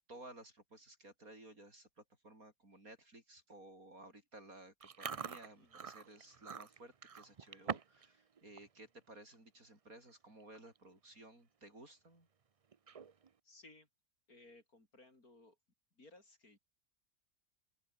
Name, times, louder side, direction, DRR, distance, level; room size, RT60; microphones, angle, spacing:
voice 1, 0.1-12.3, right 1 dB, 75° right, 8.2 m, -56 dB
Chewing mastication, 4.8-8.1 8.4-8.7 9.1-9.4 10.1-10.2 10.4-10.8 11.2-11.3 12.7-13.3, right 6 dB, 50° right, 0.4 m, -45 dB
voice 2, 13.5-13.9 14.3-15.5 16.0-16.6, left 2 dB, 90° left, 6.3 m, -60 dB
open air
omnidirectional pair, 1.5 m